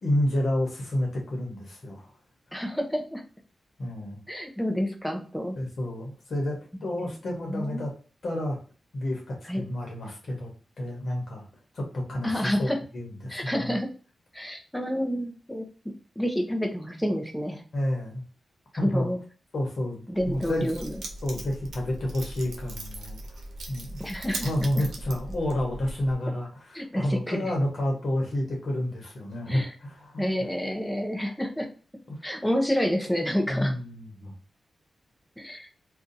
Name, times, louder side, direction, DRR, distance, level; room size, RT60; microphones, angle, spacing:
voice 1, 0.0-2.1 3.8-4.2 5.5-7.9 8.2-8.6 8.9-10.5 10.8-11.5 11.7-13.7 17.7-18.2 18.8-19.1 19.5-20.0 20.3-20.8 21.2-23.4 23.7-24.0 24.4-30.3 32.1-32.3 33.5-34.3, left 1 dB, 60° left, 0 dB, 1.0 m, -30 dB
voice 2, 2.5-3.2 4.3-5.6 7.0-7.9 9.5-9.6 12.2-12.8 13.3-13.9 14.3-15.7 16.2-17.6 18.7-19.2 20.1-21.0 24.0-24.5 24.7-24.8 26.7-27.5 29.4-29.7 30.2-31.7 32.2-33.7 35.4-35.7, equal, 5° left, 3 dB, 0.6 m, -29 dB
Keys jangling, 20.1-26.2, right 2 dB, 85° right, 0.8 m, -39 dB
2.6 x 2.3 x 3.9 m, 0.38 s
wide cardioid pair, 125°, 0 cm